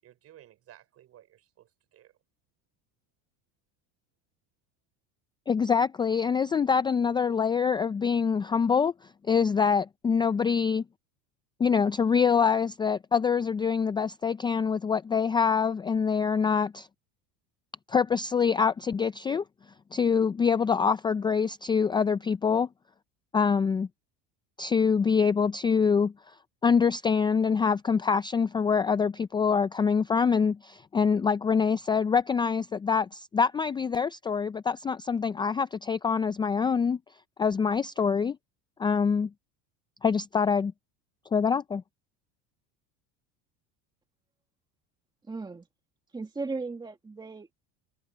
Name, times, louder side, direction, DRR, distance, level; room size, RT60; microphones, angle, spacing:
voice 1, 0.0-2.2, right 12 dB, 45° right, 6.1 m, -56 dB
voice 2, 5.5-8.9 9.3-10.8 11.6-16.9 17.9-19.4 19.9-22.7 23.3-23.9 24.6-26.1 26.6-37.0 37.4-38.4 38.8-39.3 40.0-40.7 41.3-41.8, left 6 dB, 15° left, 0.4 m, -25 dB
voice 3, 45.2-45.7 46.1-47.5, right 3 dB, 15° right, 1.8 m, -36 dB
supercardioid pair, 125°, 33 cm